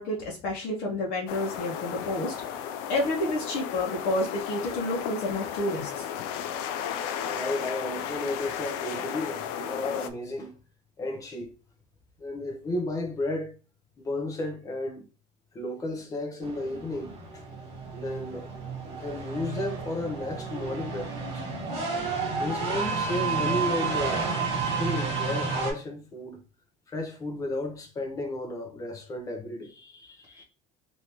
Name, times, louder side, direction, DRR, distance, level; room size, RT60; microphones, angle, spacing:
voice 1, 0.0-2.3 2.9-6.1, left 1 dB, 50° left, 0.9 m, -29 dB
sound 1, 1.3-10.1, left 9 dB, 85° left, 0.4 m, -34 dB
voice 2, 7.2-10.6 11.0-11.5 12.2-13.5 14.0-15.0 15.5-17.4 17.9-18.5 18.8-21.4 22.4-24.2 24.6-26.4 26.9-30.4, left 2 dB, 15° left, 0.6 m, -33 dB
sound 2, 16.4-25.7, right 4 dB, 30° right, 1.5 m, -31 dB
3.3 x 2.6 x 2.9 m
cardioid pair, 170°, 19 cm